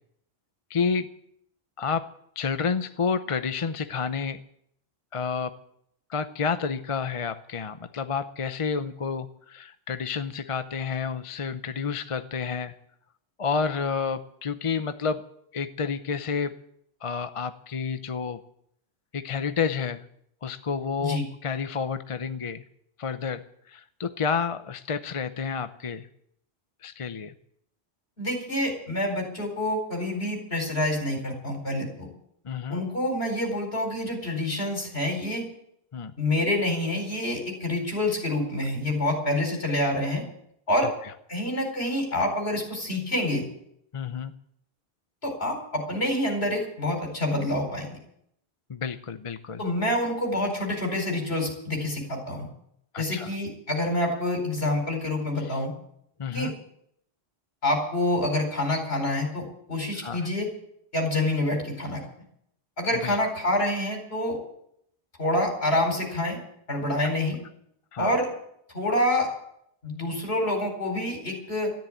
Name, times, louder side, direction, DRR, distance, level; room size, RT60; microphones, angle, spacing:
voice 1, 0.7-1.1 1.8-2.1 2.4-4.4 5.1-5.5 6.1-12.7 13.4-15.2 15.5-16.5 17.0-18.4 19.1-20.0 20.4-22.6 23.0-23.4 23.7-26.1 26.8-27.3 32.4-32.8 35.9-36.1 40.8-41.1 43.9-44.3 48.7-49.6 52.9-53.3 55.4-55.6 56.2-56.5 60.0-60.3 63.0-63.2 67.9-68.1, left 5 dB, 35° left, 10 dB, 0.7 m, -30 dB
voice 2, 28.2-32.1 32.7-35.5 36.2-40.2 40.7-40.9 41.3-43.4 45.2-47.9 49.6-52.5 53.0-55.7 56.3-56.5 57.6-60.5 60.9-62.0 62.8-64.4 65.2-66.4 66.7-67.4 68.0-68.3 68.7-69.3 69.8-71.7, left 1 dB, 65° left, 2 dB, 4.9 m, -27 dB
13.5 x 10.5 x 9.1 m, 0.73 s
omnidirectional pair, 1.1 m